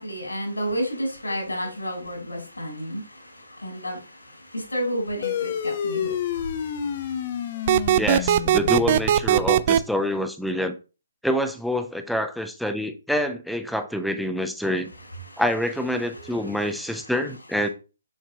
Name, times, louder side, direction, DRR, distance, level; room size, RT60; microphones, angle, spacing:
voice 1, 0.0-8.1 15.0-15.4 16.0-17.1, equal, 85° left, 3.8 m, -33 dB
sound 1, 5.2-10.1, left 9 dB, 40° left, 0.7 m, -30 dB
sound 2, 7.7-9.8, right 11 dB, 40° right, 0.3 m, -19 dB
voice 2, 8.0-10.8 11.2-14.9 15.4-17.7, equal, ahead, 0.6 m, -26 dB
7.3 x 5.8 x 2.8 m
figure-of-eight pair, 135°, 0 cm